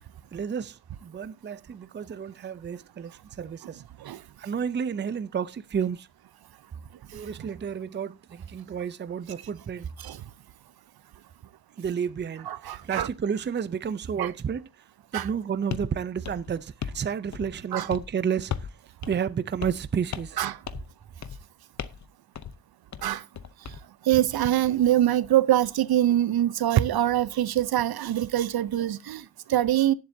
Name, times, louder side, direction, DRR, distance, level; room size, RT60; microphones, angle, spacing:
voice 1, 0.3-3.1 3.4-3.8 4.4-6.1 7.1-9.9 11.8-12.5 12.8-14.7 15.1-18.5 19.1-20.4, right 7 dB, 30° right, 0.5 m, -31 dB
voice 2, 12.4-13.1 14.2-14.3 15.1-15.3 17.7-17.9 20.4-20.6 23.0-23.2 24.0-29.9, right 12 dB, 75° right, 0.7 m, -24 dB
sound 1, 15.7-15.9 16.2-17.0 17.3-17.6 17.9-18.1 18.5-18.8 19.0-19.1 19.6-19.9 20.1-20.4 20.7-20.9 21.2-21.4 21.8-22.1 22.4-22.6 22.9-23.8, left 8 dB, 50° left, 0.7 m, -36 dB
18.5 x 7.6 x 2.7 m
wide cardioid pair, 155°, 37 cm